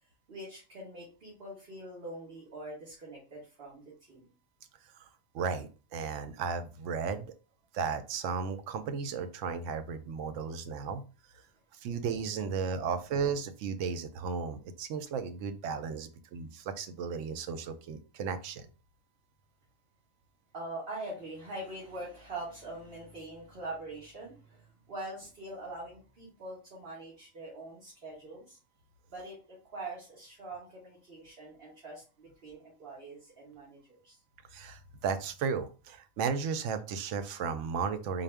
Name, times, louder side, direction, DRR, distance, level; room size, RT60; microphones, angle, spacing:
voice 1, 0.3-3.8 4.1-4.3 20.5-28.6 29.1-34.2, right 2 dB, 50° right, -5 dB, 1.5 m, -43 dB
voice 2, 5.3-7.3 7.7-11.0 11.7-18.7 34.5-38.2, right 6 dB, 80° right, 9 dB, 0.9 m, -34 dB
3.9 x 2.4 x 3.3 m, 0.34 s
omnidirectional pair, 1.3 m